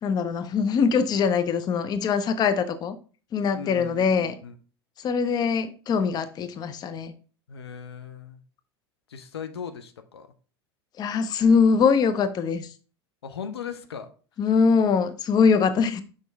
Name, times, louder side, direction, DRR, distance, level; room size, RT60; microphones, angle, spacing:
voice 1, 0.0-3.0 3.3-4.3 5.0-7.1 11.0-12.7 14.4-16.0, left 5 dB, 30° left, 0.6 m, -22 dB
voice 2, 3.5-4.5 7.5-8.4 9.1-10.3 13.2-14.1, left 7 dB, 75° left, 0.7 m, -38 dB
6.1 x 5.2 x 3.4 m
figure-of-eight pair, 80°, 14 cm